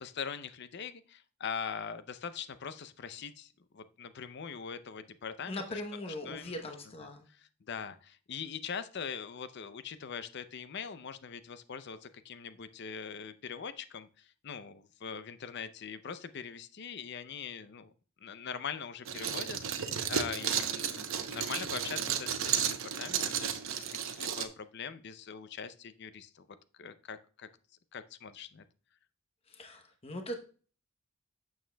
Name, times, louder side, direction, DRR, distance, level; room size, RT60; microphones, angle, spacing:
voice 1, 0.0-5.8 6.2-6.5 7.4-17.9 18.2-26.5 26.8-27.5 27.9-28.6, left 6 dB, 55° left, 13 dB, 0.5 m, -42 dB
voice 2, 5.5-7.3 29.5-30.3, left 1 dB, 30° left, 5 dB, 0.8 m, -40 dB
sound 1, 19.1-24.5, right 8 dB, 65° right, 0.7 m, -33 dB
8.7 x 7.1 x 2.2 m, 0.39 s
head